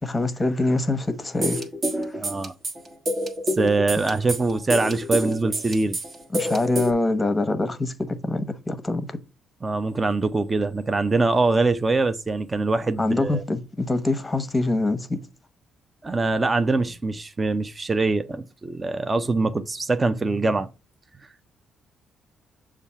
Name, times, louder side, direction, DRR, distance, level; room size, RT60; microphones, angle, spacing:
voice 1, 0.0-1.6 2.0-2.2 6.3-9.2 13.0-15.3, left 2 dB, 20° left, 0.9 m, -25 dB
sound 1, 1.4-6.9, equal, 45° right, 1.3 m, -27 dB
voice 2, 2.2-2.5 3.6-6.0 9.6-13.4 16.0-20.7, right 3 dB, 25° right, 0.5 m, -23 dB
6.9 x 2.4 x 5.5 m
cardioid pair, 90°, 0 cm